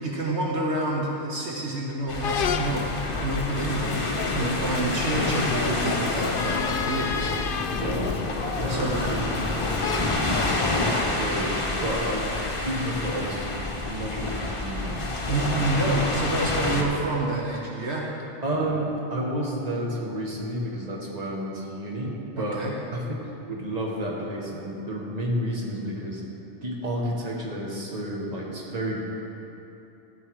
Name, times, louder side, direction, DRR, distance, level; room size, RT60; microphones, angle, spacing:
voice 1, 0.0-7.3 8.7-9.0 15.3-18.1 22.4-22.7, right 2 dB, 70° right, -2 dB, 1.4 m, -28 dB
sound 1, 2.1-16.8, left 2 dB, 30° left, 1.0 m, -28 dB
sound 2, 2.2-10.5, left 6 dB, 60° left, 0.6 m, -31 dB
voice 2, 7.7-8.2 8.6-9.5 10.1-11.5 11.8-12.3 12.6-13.6 13.8-15.1 18.4-22.6 22.9-26.2 26.6-29.0, right 1 dB, 35° right, -2 dB, 1.6 m, -31 dB
13.5 x 8.3 x 4.8 m, 2.9 s
omnidirectional pair, 1.2 m